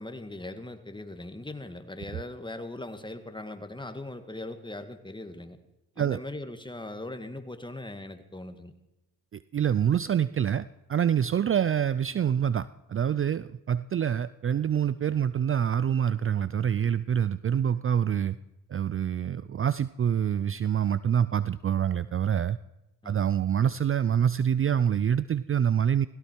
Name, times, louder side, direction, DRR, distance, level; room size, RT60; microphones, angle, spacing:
voice 1, 0.0-5.6 6.0-8.7 23.0-23.2, left 2 dB, 15° left, 9 dB, 1.9 m, -40 dB
voice 2, 9.3-18.4 18.7-22.6 23.0-26.1, right 9 dB, 35° right, 17 dB, 0.5 m, -26 dB
17.0 x 16.5 x 4.6 m, 0.97 s
supercardioid pair, 55°, 37 cm